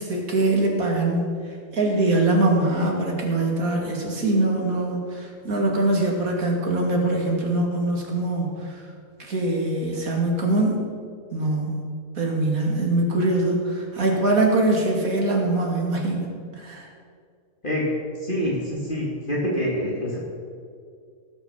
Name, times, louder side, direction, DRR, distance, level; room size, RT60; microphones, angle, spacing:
voice 1, 0.0-1.4 1.7-8.8 9.2-10.9 11.3-11.8 12.2-16.9, right 2 dB, 65° right, 0 dB, 2.6 m, -23 dB
voice 2, 18.1-20.2, equal, 35° left, -5 dB, 2.4 m, -26 dB
17.0 x 6.2 x 7.1 m, 2.2 s
omnidirectional pair, 1.6 m